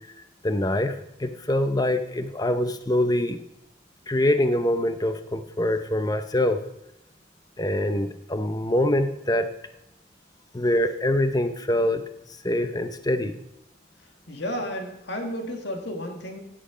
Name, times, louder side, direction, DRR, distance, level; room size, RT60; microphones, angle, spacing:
voice 1, 0.4-3.4 4.1-6.6 7.6-9.5 10.5-12.0 12.4-13.3, left 1 dB, 20° left, 9 dB, 0.7 m, -24 dB
voice 2, 14.3-16.4, equal, 65° left, 3 dB, 2.1 m, -32 dB
15.5 x 7.8 x 5.1 m, 0.85 s
head